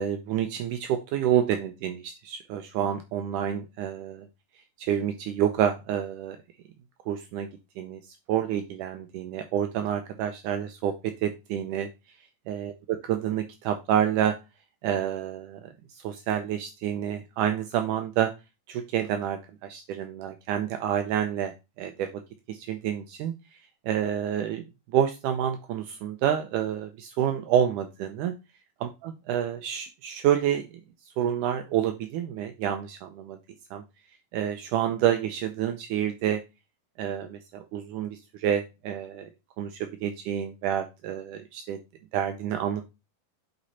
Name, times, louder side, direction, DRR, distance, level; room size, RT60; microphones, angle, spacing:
voice 1, 0.0-4.3 4.8-6.4 7.1-7.5 7.8-8.0 8.3-11.9 12.5-12.7 13.1-14.4 14.8-18.3 18.7-22.2 22.5-23.6 23.8-24.7 24.9-28.3 28.8-28.9 29.3-30.8 31.2-33.4 33.7-33.8 34.3-36.4 37.0-39.3 39.6-41.8 42.1-42.8, right 10 dB, 80° right, 6 dB, 2.1 m, -28 dB
8.2 x 4.2 x 4.1 m, 0.25 s
omnidirectional pair, 3.9 m